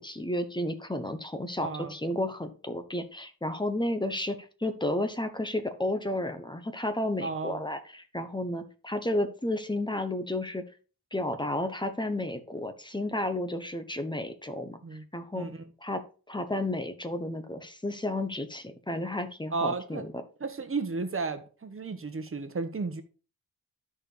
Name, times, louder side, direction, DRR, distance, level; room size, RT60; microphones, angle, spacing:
voice 1, 0.0-10.6 11.1-14.8 15.1-15.5 15.8-16.0 16.3-20.1, left 1 dB, 10° left, 1.0 m, -32 dB
voice 2, 1.6-1.9 7.2-7.6 14.8-15.0 15.3-15.7 19.5-20.0 20.4-23.0, right 4 dB, 35° right, 1.2 m, -33 dB
12.5 x 4.5 x 3.3 m
wide cardioid pair, 90°, 36 cm